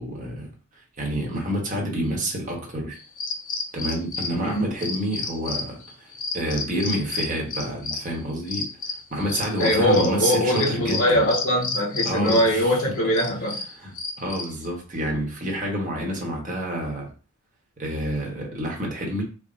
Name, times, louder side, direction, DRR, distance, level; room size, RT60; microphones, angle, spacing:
voice 1, 0.0-3.0 3.7-11.2 12.0-12.7 13.8-17.1 17.8-19.2, right 1 dB, 35° right, 1.0 m, -28 dB
sound 1, 3.0-14.7, left 4 dB, 35° left, 0.5 m, -31 dB
voice 2, 4.3-4.7 9.6-13.6, equal, 70° left, 0.9 m, -22 dB
3.4 x 2.0 x 3.8 m
head